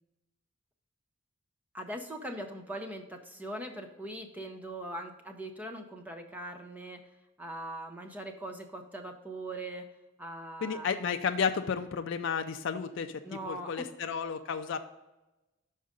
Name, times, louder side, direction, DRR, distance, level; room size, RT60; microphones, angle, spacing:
voice 1, 1.7-7.0 7.4-9.9 10.2-10.9 13.2-13.8, right 1 dB, 5° right, 4 dB, 0.6 m, -41 dB
voice 2, 10.6-14.8, left 6 dB, 55° left, 6 dB, 0.4 m, -32 dB
6.4 x 4.7 x 5.1 m, 1.0 s
head